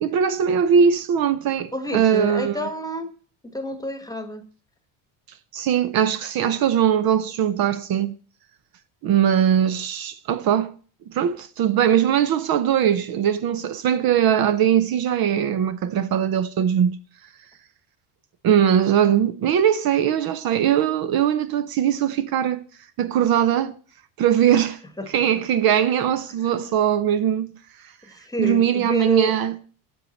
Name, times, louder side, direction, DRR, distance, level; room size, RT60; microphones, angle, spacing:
voice 1, 0.0-2.7 5.5-8.1 9.0-10.7 11.1-17.0 18.4-22.6 23.0-23.8 24.2-24.8 25.1-27.5 28.4-29.5, right 9 dB, 55° right, 0.8 m, -20 dB
voice 2, 1.7-3.1 3.4-4.4 24.6-24.7 25.0-25.1 26.4-26.5 28.0-29.4, left 1 dB, 10° left, 1.2 m, -29 dB
8.3 x 7.9 x 4.1 m
cardioid pair, 100°, 43 cm